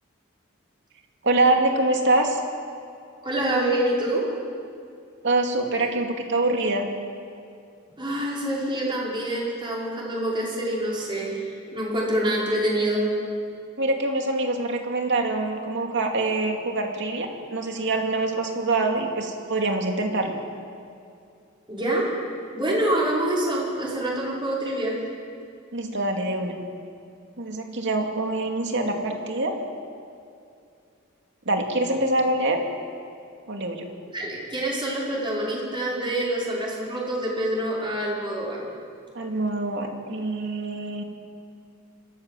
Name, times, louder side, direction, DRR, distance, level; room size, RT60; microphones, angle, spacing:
voice 1, 1.2-2.4 5.2-6.9 13.8-20.4 25.7-26.6 27.4-29.6 31.5-32.6 33.5-33.9 39.1-41.0, right 2 dB, 60° right, 2 dB, 2.6 m, -25 dB
voice 2, 3.2-4.3 8.0-13.1 21.7-22.1 22.5-25.0 34.1-38.6, right 1 dB, 25° right, -5 dB, 5.5 m, -26 dB
26.0 x 13.5 x 7.8 m, 2.4 s
head